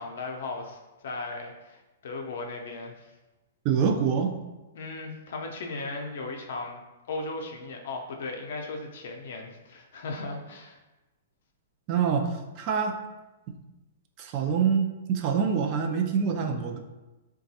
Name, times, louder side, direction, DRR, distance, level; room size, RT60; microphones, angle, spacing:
voice 1, 0.0-3.1 4.7-6.8 7.1-10.8, left 3 dB, 70° left, 2 dB, 0.5 m, -37 dB
voice 2, 3.6-4.3 11.9-13.0 14.2-16.8, right 6 dB, 40° right, 4 dB, 0.4 m, -25 dB
3.9 x 2.3 x 2.7 m, 1.1 s
hypercardioid pair, 140°, 0 cm